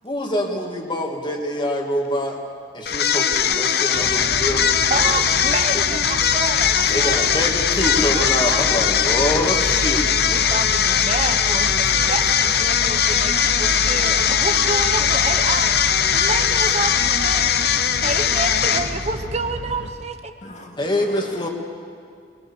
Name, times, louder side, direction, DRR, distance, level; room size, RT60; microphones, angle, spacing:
voice 1, 0.0-2.4 2.7-5.2 5.7-5.8 6.9-10.0 20.8-21.5, left 1 dB, 25° left, 2 dB, 2.4 m, -25 dB
sound 1, 2.9-19.2, left 8 dB, 60° left, 0.8 m, -20 dB
sound 2, 3.9-19.9, right 1 dB, 70° right, 1.8 m, -31 dB
voice 2, 4.9-7.3 8.0-8.9 10.3-20.3, right 3 dB, 35° right, 8 dB, 0.8 m, -29 dB
voice 3, 20.4-21.5, left 1 dB, 40° left, 2 dB, 2.3 m, -40 dB
24.0 x 21.0 x 7.2 m, 2.2 s
head